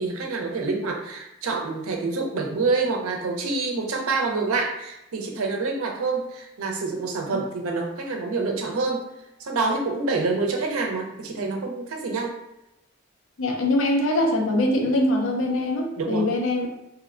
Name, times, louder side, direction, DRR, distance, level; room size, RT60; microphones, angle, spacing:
voice 1, 0.0-9.0 9.4-12.4 16.0-16.3, right 3 dB, 80° right, 2 dB, 0.5 m, -27 dB
voice 2, 13.4-16.8, left 1 dB, 65° left, 1 dB, 0.5 m, -23 dB
2.9 x 2.1 x 2.4 m, 0.88 s
head